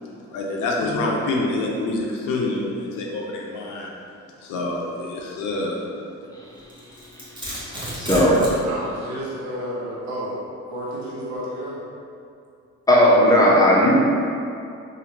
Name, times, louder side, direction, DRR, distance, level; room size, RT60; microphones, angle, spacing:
voice 1, 0.3-3.9 4.4-5.8, left 2 dB, 85° left, -2 dB, 0.5 m, -26 dB
Domestic sounds home sounds, 6.7-8.6, right 1 dB, 15° right, 0.9 m, -31 dB
voice 2, 7.2-8.4 12.9-13.9, equal, 10° left, -5 dB, 0.6 m, -17 dB
voice 3, 8.0-8.4 8.6-10.4 10.7-11.8, equal, 70° right, -6 dB, 0.8 m, -31 dB
3.1 x 2.4 x 2.8 m, 2.5 s
cardioid pair, 90°, 30 cm